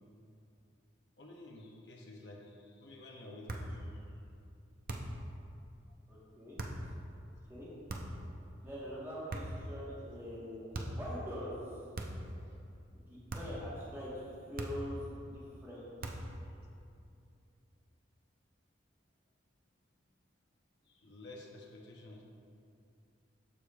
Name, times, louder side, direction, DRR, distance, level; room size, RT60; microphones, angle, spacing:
voice 1, 1.2-4.0 10.8-10.9 20.8-22.2, left 1 dB, 60° left, -1 dB, 0.8 m, -51 dB
sound 1, 3.5-3.8 4.9-5.2 6.6-6.8 7.9-8.3 9.3-9.7 10.7-11.1 11.9-12.3 13.3-13.6 14.6-15.0 16.0-16.4, right 1 dB, 50° right, 0.6 m, -40 dB
voice 2, 6.1-6.9 7.5-7.7 8.6-11.6 12.9-16.1, equal, 10° right, -9 dB, 1.4 m, -44 dB
13.5 x 4.9 x 2.4 m, 2.6 s
head